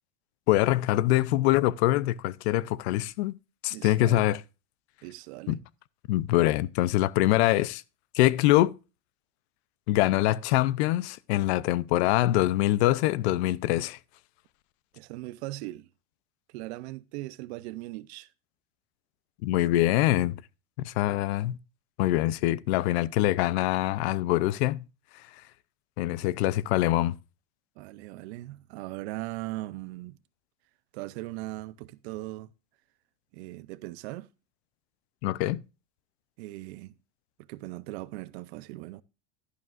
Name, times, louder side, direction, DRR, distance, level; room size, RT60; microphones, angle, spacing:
voice 1, 0.5-3.3 3.6-4.4 5.5-5.6 6.1-7.8 8.1-8.7 9.9-14.0 19.4-20.4 20.8-21.6 22.0-24.8 26.0-27.2 35.2-35.6, left 15 dB, 65° left, 0.6 m, -24 dB
voice 2, 3.7-4.3 5.0-5.6 14.9-15.9 16.5-18.3 27.8-30.2 30.9-32.5 33.3-34.3 36.4-36.9 37.5-39.0, right 18 dB, 70° right, 0.7 m, -39 dB
11.5 x 11.0 x 2.4 m
cardioid pair, 180°, 34 cm